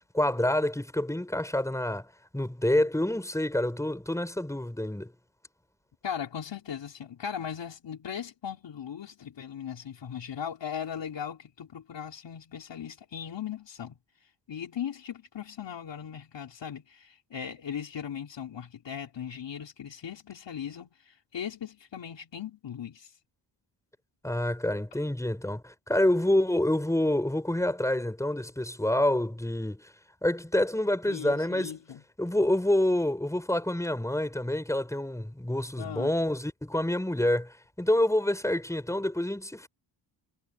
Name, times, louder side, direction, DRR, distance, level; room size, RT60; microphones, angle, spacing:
voice 1, 0.1-2.1 2.3-5.1 24.2-29.9 30.2-31.7 32.2-39.7, left 1 dB, 5° left, 6.0 m, -27 dB
voice 2, 6.0-14.0 14.5-23.1 31.1-32.0 35.8-36.1, left 8 dB, 60° left, 4.2 m, -38 dB
cardioid pair, 90°, 48 cm